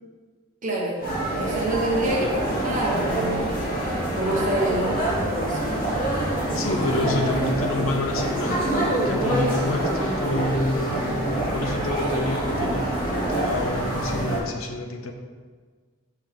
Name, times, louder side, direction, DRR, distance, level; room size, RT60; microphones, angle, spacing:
voice 1, 0.6-1.0 1.4-3.6 4.1-5.7, right 1 dB, 40° right, -2 dB, 1.1 m, -27 dB
sound 1, 1.0-14.4, right 1 dB, 40° left, 1.6 m, -26 dB
voice 2, 6.5-15.1, left 2 dB, 85° left, 4 dB, 0.7 m, -28 dB
5.9 x 3.6 x 4.9 m, 1.5 s
head